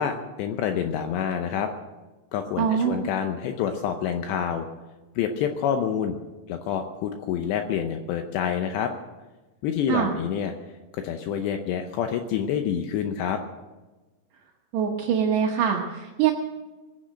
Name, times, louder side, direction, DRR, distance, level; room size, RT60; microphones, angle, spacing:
voice 1, 0.0-1.7 2.3-4.7 5.2-6.2 6.5-8.9 9.6-10.5 10.9-13.4, left 8 dB, 75° left, 6 dB, 2.8 m, -27 dB
voice 2, 2.6-3.0 9.9-10.1 14.7-16.3, right 8 dB, 70° right, 0 dB, 3.1 m, -23 dB
21.5 x 10.0 x 6.5 m, 1.2 s
omnidirectional pair, 5.4 m